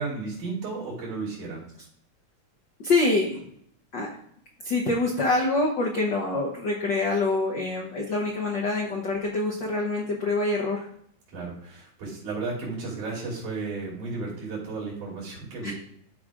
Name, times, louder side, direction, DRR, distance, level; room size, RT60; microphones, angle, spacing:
voice 1, 0.0-1.6 11.3-15.7, right 3 dB, 90° right, -5 dB, 4.3 m, -33 dB
voice 2, 2.8-3.4 3.9-4.1 4.6-10.9 15.6-15.7, left 2 dB, 75° left, -1 dB, 1.0 m, -25 dB
12.5 x 4.8 x 2.5 m, 0.67 s
omnidirectional pair, 3.4 m